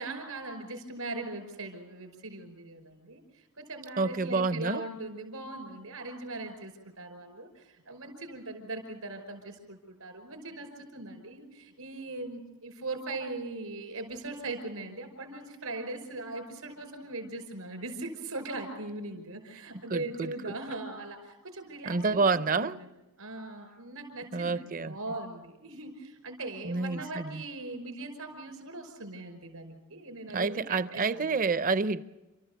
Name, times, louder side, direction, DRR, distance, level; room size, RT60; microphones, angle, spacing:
voice 1, 0.0-3.2 3.5-6.7 7.0-22.2 22.5-22.7 23.2-31.3, right 2 dB, 80° right, 5.4 m, -40 dB
voice 2, 4.0-4.8 19.9-20.6 21.8-22.8 24.3-24.9 26.6-27.4 30.3-32.0, right 4 dB, 40° right, 0.6 m, -28 dB
29.5 x 14.0 x 6.9 m
head